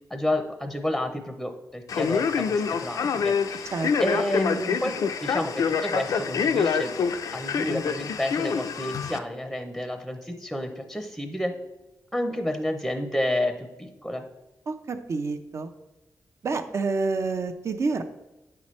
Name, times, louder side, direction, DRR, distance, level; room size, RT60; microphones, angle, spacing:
voice 1, 0.1-3.7 4.0-6.9 7.3-11.5 12.1-14.2, left 1 dB, ahead, 6 dB, 0.6 m, -30 dB
Male speech man speaking, 1.9-9.2, left 6 dB, 70° left, 0.4 m, -26 dB
voice 2, 14.7-15.7 16.4-18.0, right 4 dB, 50° right, 8 dB, 0.6 m, -28 dB
8.7 x 5.7 x 3.1 m, 0.99 s
wide cardioid pair, 145°, 6 cm